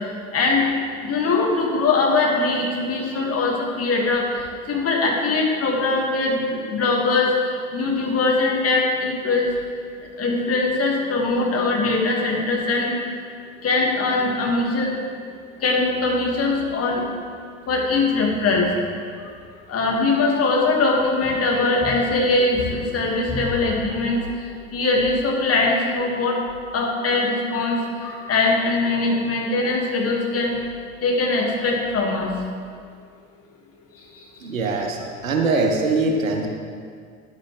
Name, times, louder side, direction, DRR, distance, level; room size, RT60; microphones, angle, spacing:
voice 1, 0.3-0.6 1.0-4.3 4.7-7.3 7.7-9.5 10.2-12.9 13.6-14.9 15.6-17.0 17.7-18.7 19.7-24.2 24.7-26.4 26.7-30.5 31.0-32.3, left 3 dB, 35° left, -1 dB, 2.0 m, -21 dB
voice 2, 34.4-35.0 35.2-36.5, right 3 dB, 80° right, 2 dB, 1.1 m, -22 dB
10.0 x 9.5 x 3.3 m, 2.1 s
figure-of-eight pair, 65°, 39 cm